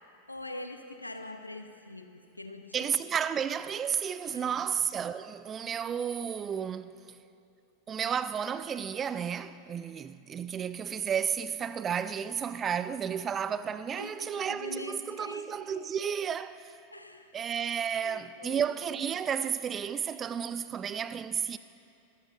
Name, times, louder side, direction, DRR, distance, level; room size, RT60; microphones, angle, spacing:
voice 1, 0.3-2.9 4.2-4.7 14.0-15.7 16.9-17.3 18.0-18.6, left 2 dB, 85° left, 1.0 m, -44 dB
voice 2, 2.7-6.9 7.9-16.7 17.3-21.6, right 8 dB, 25° right, 0.5 m, -32 dB
24.0 x 14.5 x 3.8 m
figure-of-eight pair, 90°, 0 cm